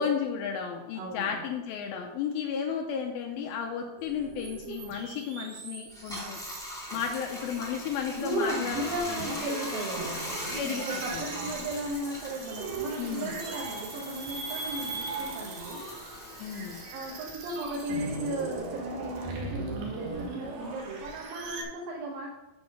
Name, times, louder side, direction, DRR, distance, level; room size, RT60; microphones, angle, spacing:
voice 1, 0.0-6.4 6.9-8.8 9.1-9.4 10.5-11.3 13.0-13.3 16.4-16.8, left 7 dB, 85° left, 2 dB, 2.1 m, -33 dB
voice 2, 1.0-1.4 8.1-15.9 16.9-22.3, right 1 dB, 80° right, -3 dB, 3.7 m, -35 dB
sound 1, 4.0-6.9 7.5-8.3 8.7-21.6, right 3 dB, 65° right, 3.0 m, -39 dB
Bathtub (filling or washing), 5.9-18.7 19.0-20.9, left 1 dB, 5° left, 0.3 m, -41 dB
8.9 x 5.3 x 6.4 m, 1.0 s
omnidirectional pair, 5.3 m